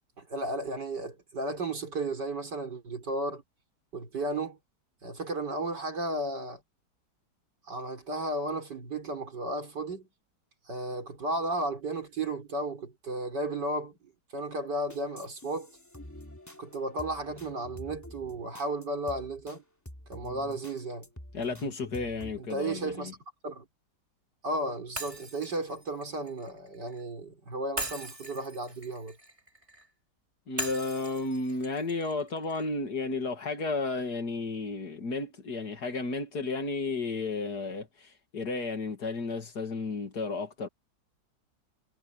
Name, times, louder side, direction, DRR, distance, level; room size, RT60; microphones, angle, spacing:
voice 1, 0.2-3.4 3.9-4.6 5.0-6.6 7.7-10.1 10.7-15.7 16.6-19.6 20.1-21.1 22.4-23.1 23.4-23.7 24.4-29.2, right 2 dB, 70° right, 4.9 m, -34 dB
sound 1, 14.9-19.6 19.8-22.4, left 1 dB, 10° left, 3.0 m, -47 dB
voice 2, 21.3-23.1 30.5-40.7, left 3 dB, 65° left, 2.9 m, -33 dB
Shatter, 25.0-27.0 27.8-29.9 30.6-32.7, right 1 dB, 15° right, 3.6 m, -40 dB
omnidirectional pair, 1.9 m